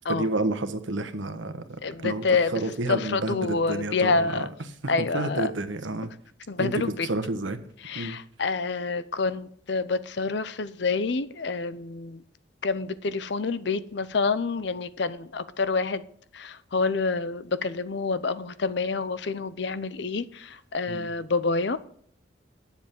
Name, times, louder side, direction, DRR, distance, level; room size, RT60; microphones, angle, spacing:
voice 1, 0.0-4.5 4.8-6.1 6.6-6.7 7.0-7.6 7.9-8.2 20.9-21.1, right 2 dB, 75° right, 1.2 m, -30 dB
voice 2, 1.8-2.5 2.9-4.5 4.9-5.5 6.5-7.1 7.8-12.2 12.6-16.0 16.3-21.8, left 4 dB, 60° left, 0.6 m, -27 dB
10.5 x 7.2 x 7.5 m
head